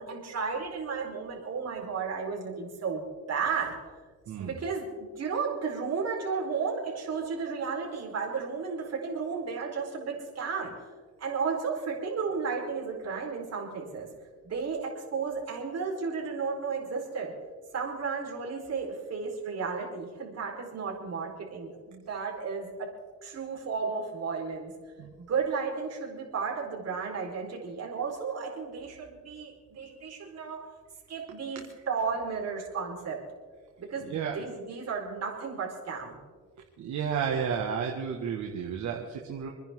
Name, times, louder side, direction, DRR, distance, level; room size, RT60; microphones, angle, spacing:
voice 1, 0.0-3.0 3.3-3.8 4.4-10.7 11.2-14.1 14.4-17.3 17.7-22.9 23.2-24.7 25.2-30.7 31.1-33.2 33.8-36.2, right 5 dB, 55° right, -1 dB, 4.5 m, -33 dB
voice 2, 36.8-39.5, right 7 dB, 70° right, 0 dB, 1.8 m, -32 dB
28.0 x 10.5 x 3.8 m, 1.5 s
cardioid pair, 90°, 30 cm